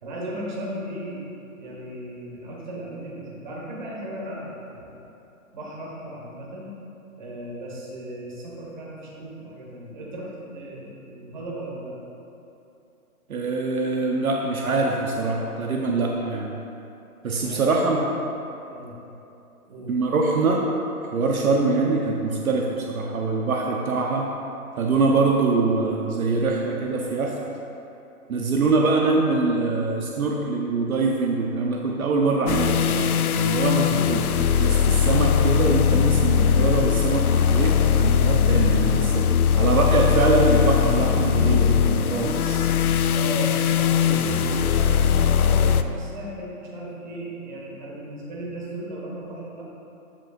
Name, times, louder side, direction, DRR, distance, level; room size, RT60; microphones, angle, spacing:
voice 1, 0.0-1.2 1.6-5.0 5.5-6.7 7.1-11.9 17.4-18.1 18.7-18.9 19.7-20.0 43.1-49.6, right 1 dB, 30° right, -4 dB, 1.5 m, -36 dB
voice 2, 13.3-16.6 17.2-18.0 19.9-20.6 21.1-24.3 24.8-27.4 28.3-34.3 34.6-39.3 39.5-42.7, right 3 dB, 70° right, 0 dB, 0.8 m, -23 dB
sound 1, 32.5-45.8, left 8 dB, 75° left, 0.5 m, -20 dB
14.0 x 5.3 x 2.5 m, 2.9 s
hypercardioid pair, 165°, 44 cm